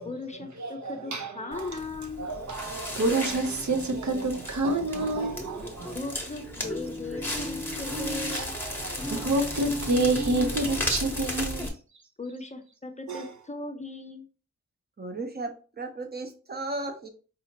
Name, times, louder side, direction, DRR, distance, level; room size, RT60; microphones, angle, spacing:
voice 1, 0.0-2.3 5.9-8.6 12.2-14.3, left 3 dB, 25° left, 0.5 m, -38 dB
voice 2, 0.6-1.7 2.2-6.0 8.3-11.7 13.1-13.2, right 2 dB, 70° right, 0.8 m, -28 dB
Crackle, 1.5-11.7, left 1 dB, 5° left, 0.9 m, -34 dB
voice 3, 15.0-17.1, right 2 dB, 35° right, 0.7 m, -35 dB
4.8 x 2.8 x 2.8 m
wide cardioid pair, 115°, 29 cm